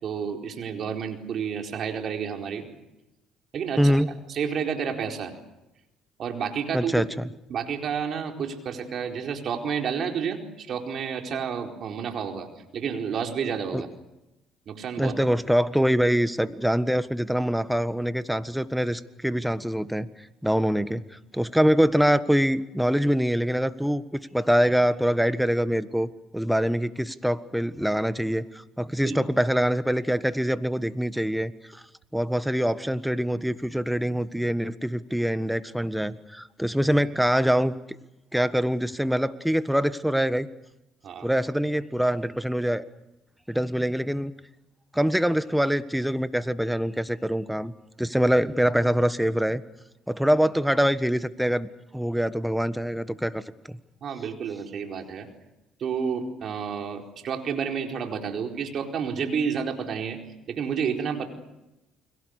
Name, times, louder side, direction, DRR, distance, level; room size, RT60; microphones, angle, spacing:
voice 1, 0.0-2.7 3.5-4.0 4.3-5.3 6.2-7.1 7.5-12.5 12.7-13.9 14.7-15.1 29.0-29.2 41.0-41.3 54.0-55.3 55.8-60.2 60.5-61.3, right 7 dB, 55° right, 3 dB, 4.4 m, -30 dB
voice 2, 3.8-4.1 6.7-7.3 13.7-13.8 15.0-20.1 20.4-31.8 32.1-37.8 38.3-40.5 41.2-42.8 43.5-44.3 44.9-49.6 50.1-51.7 51.9-53.8, equal, 5° right, 13 dB, 1.5 m, -24 dB
29.5 x 22.5 x 6.7 m, 0.94 s
supercardioid pair, 65°, 0 cm